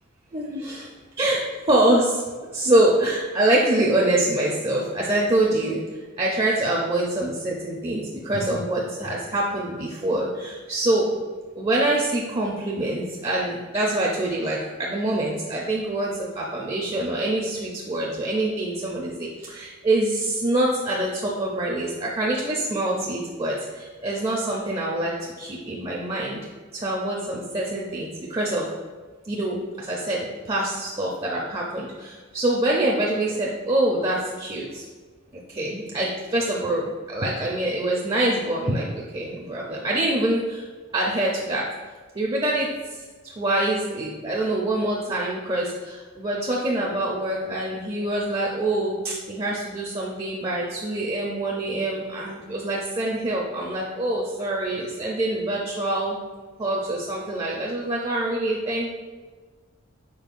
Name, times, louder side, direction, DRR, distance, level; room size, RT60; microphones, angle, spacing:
voice 1, 0.3-0.9 1.2-2.2 2.5-5.8 6.2-11.1 11.6-26.4 26.7-28.7 29.2-34.8 35.5-40.6 40.9-41.7 42.2-56.2 56.6-58.9, right 1 dB, 25° right, -3 dB, 0.4 m, -25 dB
5.2 x 4.1 x 2.4 m, 1.4 s
head